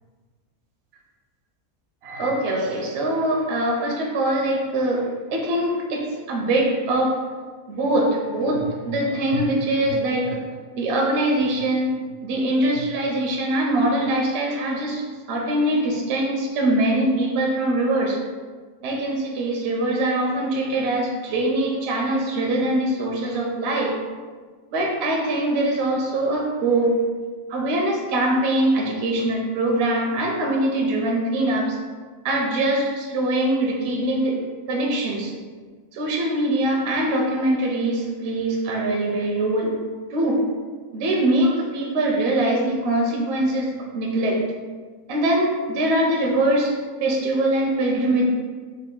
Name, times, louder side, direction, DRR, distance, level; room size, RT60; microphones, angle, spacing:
voice 1, 2.0-7.1 7.7-10.4 10.8-11.9 12.2-18.2 18.8-24.0 24.7-27.0 27.5-31.8 32.2-34.4 34.7-35.3 35.9-39.8 40.1-40.4 40.9-43.7 43.9-44.4 45.1-46.7 47.0-48.2, right 1 dB, 65° right, 0 dB, 0.7 m, -22 dB
4.0 x 2.2 x 3.6 m, 1.5 s
omnidirectional pair, 1.5 m